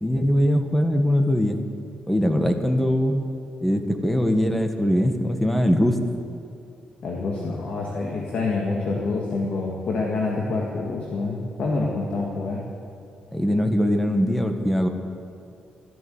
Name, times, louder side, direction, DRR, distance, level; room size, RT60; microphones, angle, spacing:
voice 1, 0.0-1.6 2.1-3.3 3.6-6.0 13.3-14.9, equal, 5° left, 6 dB, 1.4 m, -21 dB
voice 2, 7.0-12.6, left 3 dB, 65° left, -2 dB, 2.0 m, -27 dB
13.5 x 12.0 x 7.9 m, 2.6 s
cardioid pair, 95°, 3 cm